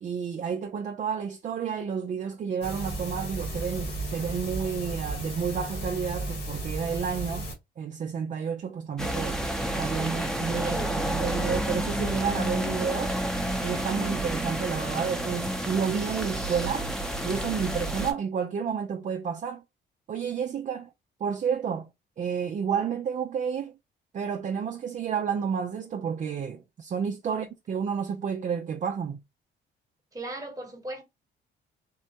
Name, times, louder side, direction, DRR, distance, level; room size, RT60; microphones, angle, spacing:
voice 1, 0.0-7.5 7.8-9.4 9.8-13.1 13.6-16.9 17.2-19.6 20.1-20.9 21.2-21.9 22.2-23.7 24.1-29.2, right 7 dB, 40° right, 0.4 m, -30 dB
sound 1, 2.6-7.5, right 2 dB, 70° left, 1.6 m, -34 dB
sound 2, 9.0-18.1, right 1 dB, 5° left, 0.7 m, -30 dB
voice 2, 10.6-11.0 27.3-27.4 30.1-31.0, right 1 dB, 15° right, 1.2 m, -37 dB
3.6 x 2.1 x 2.8 m
cardioid pair, 90°, 20 cm